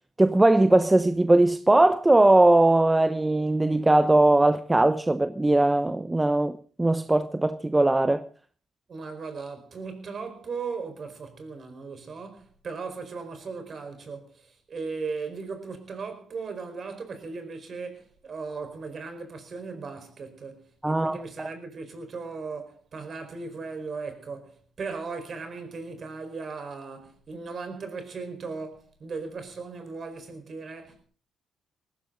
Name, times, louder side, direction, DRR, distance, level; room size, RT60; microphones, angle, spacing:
voice 1, 0.2-8.2 20.8-21.5, right 2 dB, 15° right, 0.8 m, -20 dB
voice 2, 8.9-31.0, right 4 dB, 45° right, 4.7 m, -37 dB
19.0 x 15.5 x 3.9 m
cardioid pair, 90°, 0 cm